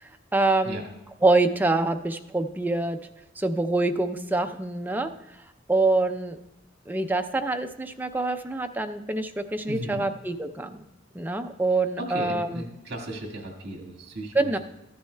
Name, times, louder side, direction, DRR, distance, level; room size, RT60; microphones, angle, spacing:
voice 1, 0.3-0.8 1.2-3.0 3.4-5.1 5.7-6.4 6.9-10.8 11.1-12.6 14.3-14.6, right 2 dB, 10° right, 6 dB, 0.4 m, -25 dB
voice 2, 9.7-10.0 12.0-14.6, right 1 dB, 55° right, 1 dB, 1.8 m, -36 dB
14.5 x 10.0 x 2.2 m, 0.89 s
head